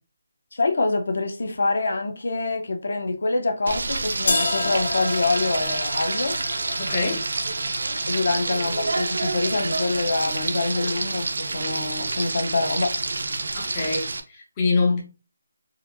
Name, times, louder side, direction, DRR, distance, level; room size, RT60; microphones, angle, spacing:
voice 1, 0.5-6.4 8.1-12.9, left 3 dB, 50° left, 0.7 m, -25 dB
Frying (food), 3.7-14.2, right 3 dB, 50° right, 0.5 m, -28 dB
sound 1, 4.3-10.2, left 3 dB, 70° left, 1.0 m, -31 dB
voice 2, 6.8-7.2 13.5-15.0, left 3 dB, 15° left, 0.5 m, -25 dB
4.2 x 2.5 x 2.6 m
hypercardioid pair, 180°, 0 cm